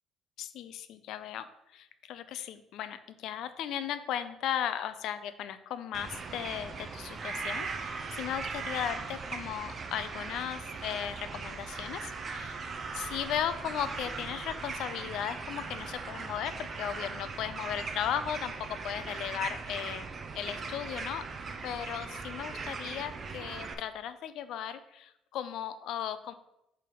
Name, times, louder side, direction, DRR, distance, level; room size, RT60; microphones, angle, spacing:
voice 1, 0.4-1.5 1.7-12.7 12.9-20.1 20.3-21.3 21.6-26.3, left 10 dB, 60° left, 12 dB, 0.4 m, -36 dB
sound 1, 5.9-23.7, right 4 dB, 30° right, 0.5 m, -39 dB
5.9 x 3.5 x 4.6 m, 0.83 s
cardioid pair, 165°, 0 cm